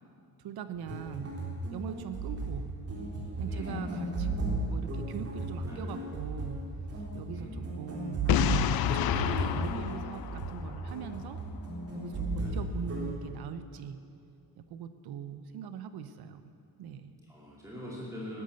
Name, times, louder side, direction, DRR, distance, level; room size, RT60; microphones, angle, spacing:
voice 1, 0.4-1.4 1.7-2.7 3.4-6.6 7.1-8.5 8.7-11.4 11.9-14.0 14.6-16.4 16.8-17.1, right 8 dB, 80° right, 10 dB, 1.1 m, -41 dB
sound 1, 0.8-13.1, right 2 dB, 40° right, 3.4 m, -35 dB
voice 2, 3.5-3.9 5.6-5.8 7.3-7.5 12.4-12.5 17.3-18.4, left 1 dB, 10° right, -6 dB, 2.5 m, -43 dB
Boom, 8.3-11.1, left 12 dB, 70° left, 0.6 m, -29 dB
17.5 x 12.0 x 6.6 m, 2.7 s
cardioid pair, 175°, 37 cm